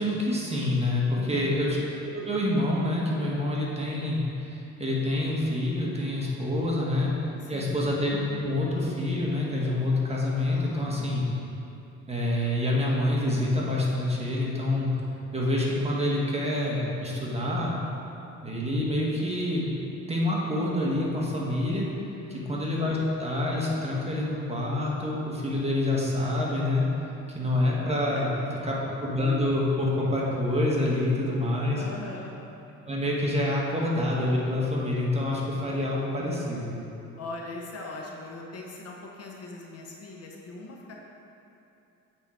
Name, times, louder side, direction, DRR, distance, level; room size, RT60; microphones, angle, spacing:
voice 1, 0.0-1.8 2.0-4.2 4.5-7.1 7.5-11.2 12.1-14.9 15.3-17.7 18.4-19.7 20.1-21.9 22.5-26.8 27.3-28.4 28.7-28.8 29.0-31.8 32.9-36.7, left 1 dB, 20° right, -4 dB, 1.4 m, -27 dB
voice 2, 1.1-1.6 7.4-8.0 10.5-11.1 22.2-22.6 28.1-28.9 31.8-32.4 37.2-41.0, left 2 dB, 55° left, -1 dB, 1.0 m, -41 dB
8.3 x 3.8 x 4.4 m, 2.8 s
cardioid pair, 90°, 30 cm